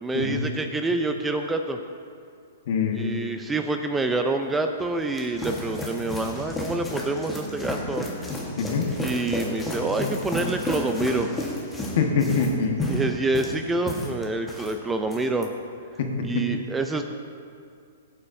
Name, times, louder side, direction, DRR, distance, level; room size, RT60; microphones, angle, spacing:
voice 1, 0.0-1.8 2.9-8.1 9.0-11.3 12.9-15.5 16.2-17.0, right 2 dB, 10° right, 6 dB, 0.5 m, -27 dB
voice 2, 2.7-3.1 8.6-8.9 12.0-12.7 16.0-16.5, left 5 dB, 55° left, 2 dB, 1.4 m, -24 dB
sound 1, 4.8-14.7 15.0-15.5, left 1 dB, 10° left, 1.4 m, -32 dB
17.0 x 8.5 x 2.7 m, 2.3 s
hypercardioid pair, 135°, 0 cm